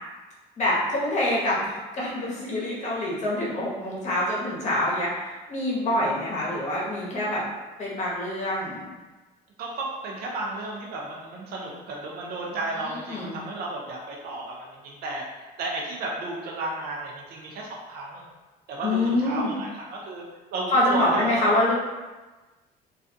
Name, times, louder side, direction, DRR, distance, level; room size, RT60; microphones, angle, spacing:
voice 1, 0.6-7.4 7.8-8.9 12.9-13.4 18.8-19.5 20.7-21.7, left 1 dB, 45° left, -5 dB, 0.9 m, -26 dB
voice 2, 9.6-15.2 15.6-18.2 18.7-20.2 20.5-21.6, right 2 dB, 65° right, -2 dB, 0.5 m, -33 dB
2.4 x 2.2 x 2.6 m, 1.2 s
cardioid pair, 110°, 17 cm